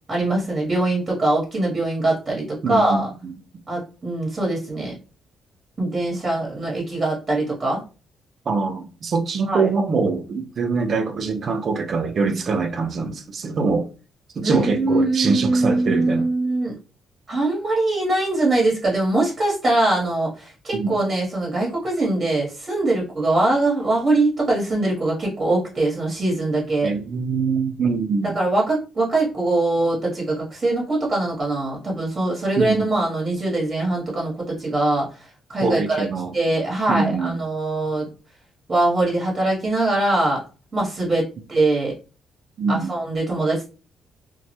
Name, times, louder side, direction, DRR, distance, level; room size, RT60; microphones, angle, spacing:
voice 1, 0.1-3.1 3.7-4.9 5.8-7.8 9.4-9.7 14.4-16.8 17.3-26.9 28.3-35.1 35.5-36.1 36.3-38.1 38.7-40.4 40.7-41.9 42.7-43.7, right 2 dB, 35° right, 0.9 m, -22 dB
voice 2, 2.6-3.3 8.5-13.9 14.4-16.3 20.7-21.0 26.8-28.4 32.6-32.9 35.6-36.4 36.9-37.4 42.6-42.9, right 4 dB, 50° right, 0.4 m, -23 dB
2.2 x 2.0 x 2.8 m
cardioid pair, 90°, 0 cm